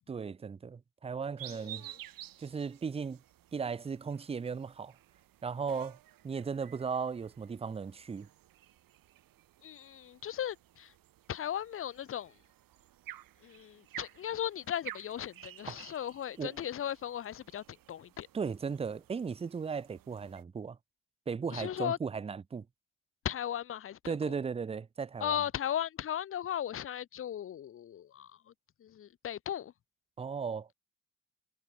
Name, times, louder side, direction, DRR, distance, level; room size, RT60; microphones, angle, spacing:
voice 1, 0.1-1.8 2.4-3.2 3.5-4.9 5.4-6.0 6.2-8.3 15.7-15.8 16.4-16.6 18.3-20.8 21.3-22.7 24.1-25.4 30.2-30.7, right 5 dB, 20° right, 0.4 m, -36 dB
sound 1, 1.4-20.4, right 13 dB, 85° right, 1.6 m, -52 dB
voice 2, 1.5-1.8 9.6-10.9 11.3-12.3 13.4-18.3 21.5-22.0 23.2-24.3 25.2-28.3 28.8-29.7, left 10 dB, 40° left, 0.5 m, -37 dB
cardioid pair, 85°, 33 cm